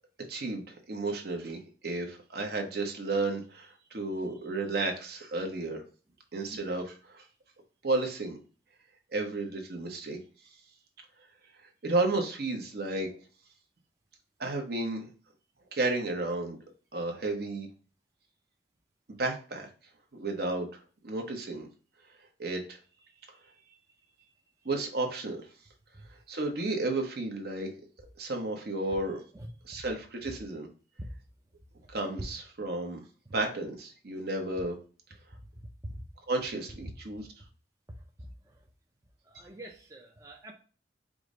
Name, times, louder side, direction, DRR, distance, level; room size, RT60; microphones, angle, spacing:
voice 1, 0.3-5.8 6.3-7.2 7.8-8.4 9.1-10.2 11.8-13.1 14.4-15.1 15.7-16.6 16.9-17.7 19.2-19.7 20.2-20.7 21.0-21.7 22.4-22.8 24.6-25.5 26.3-27.7 28.2-29.2 29.7-30.7 31.9-33.0 33.3-34.8 36.3-37.3, right 2 dB, 60° right, 3 dB, 0.9 m, -32 dB
voice 2, 37.9-38.6 39.2-40.5, right 1 dB, 20° right, 0 dB, 0.5 m, -47 dB
4.9 x 2.1 x 3.7 m, 0.38 s
head